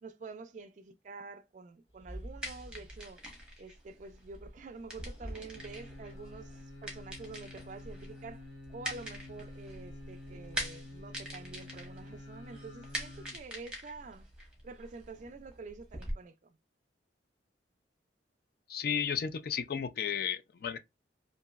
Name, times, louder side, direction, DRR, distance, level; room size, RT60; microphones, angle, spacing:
voice 1, 0.0-3.2 3.6-14.3 14.6-16.6, right 3 dB, 40° right, 0.3 m, -48 dB
sound 1, 1.9-3.1 4.0-6.6, right 1 dB, 35° left, 1.8 m, -51 dB
sound 2, 2.1-16.1, equal, 5° right, 0.9 m, -44 dB
sound 3, 5.5-13.4 13.7-13.8, left 2 dB, 80° left, 1.0 m, -50 dB
voice 2, 18.7-20.8, left 7 dB, 55° left, 0.3 m, -33 dB
2.9 x 2.6 x 2.3 m
head